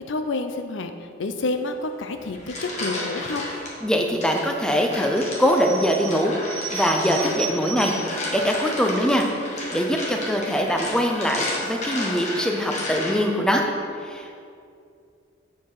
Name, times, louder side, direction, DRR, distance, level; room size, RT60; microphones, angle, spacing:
voice 1, 0.1-0.9 1.2-3.5, left 2 dB, 70° left, 7 dB, 0.5 m, -28 dB
sound 1, 2.2-3.7 4.2-13.4, left 2 dB, 35° left, 1.3 m, -33 dB
voice 2, 3.8-9.3 9.7-13.6 14.0-14.4, equal, 5° left, 2 dB, 0.5 m, -23 dB
sound 2, 5.0-8.2 8.8-8.9 9.1-9.5 10.2-10.5 10.9-11.0 11.2-11.3, right 5 dB, 85° right, 0.8 m, -35 dB
8.0 x 4.6 x 4.8 m, 2.4 s
head